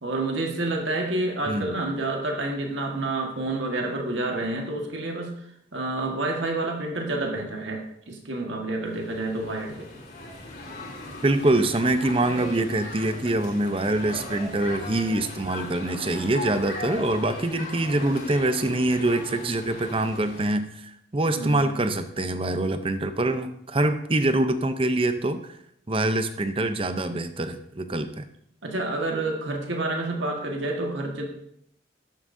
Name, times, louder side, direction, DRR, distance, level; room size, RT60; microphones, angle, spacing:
voice 1, 0.0-5.4 5.7-9.9 21.3-21.8 28.6-31.3, right 2 dB, 85° right, 2 dB, 1.7 m, -29 dB
voice 2, 1.5-1.8 11.2-25.4 25.9-28.2, right 2 dB, 30° right, 9 dB, 0.7 m, -25 dB
sound 1, 8.8-20.5, left 1 dB, 50° left, 3.2 m, -38 dB
13.5 x 11.0 x 2.7 m, 0.73 s
head